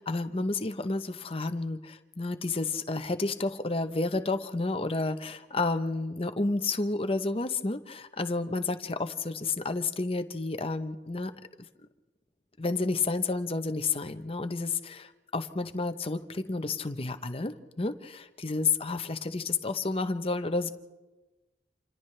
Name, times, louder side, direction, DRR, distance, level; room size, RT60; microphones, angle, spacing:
voice 1, 0.1-11.3 12.6-20.7, left 3 dB, 30° left, 9 dB, 0.8 m, -31 dB
29.0 x 27.5 x 3.3 m, 1.2 s
head